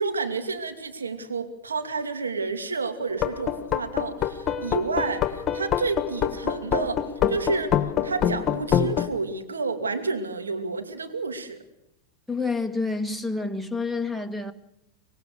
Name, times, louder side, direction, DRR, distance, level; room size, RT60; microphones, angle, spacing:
voice 1, 0.0-11.6, right 4 dB, 90° right, 2.5 m, -30 dB
sound 1, 3.1-9.1, left 9 dB, 30° left, 1.8 m, -25 dB
Piano, 4.5-7.9, left 3 dB, 15° left, 2.2 m, -41 dB
voice 2, 12.3-14.5, left 3 dB, 5° right, 1.9 m, -28 dB
25.0 x 19.0 x 6.7 m
hypercardioid pair, 100°, 0 cm